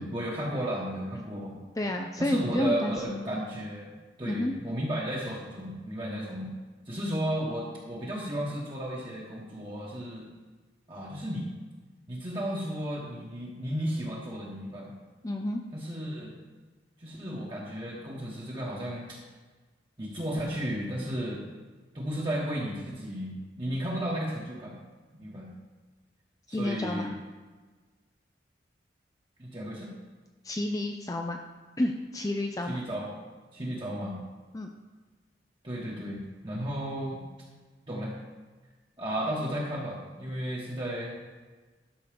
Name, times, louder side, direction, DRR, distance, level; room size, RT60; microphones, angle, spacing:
voice 1, 0.0-1.6 2.2-3.9 4.2-6.5 6.8-10.3 10.9-11.5 12.1-14.9 15.7-16.4 17.0-19.2 20.0-21.4 21.9-24.7 25.2-25.5 26.5-27.2 29.4-29.9 32.7-33.1 33.5-34.2 35.6-37.2 37.9-38.3 39.0-41.1, equal, 25° right, -5 dB, 1.3 m, -34 dB
voice 2, 1.8-3.2 4.3-4.5 15.2-15.6 26.5-27.1 30.4-31.4 31.8-32.8 34.5-34.7, left 1 dB, 20° left, 3 dB, 0.5 m, -30 dB
12.0 x 6.2 x 5.2 m, 1.3 s
head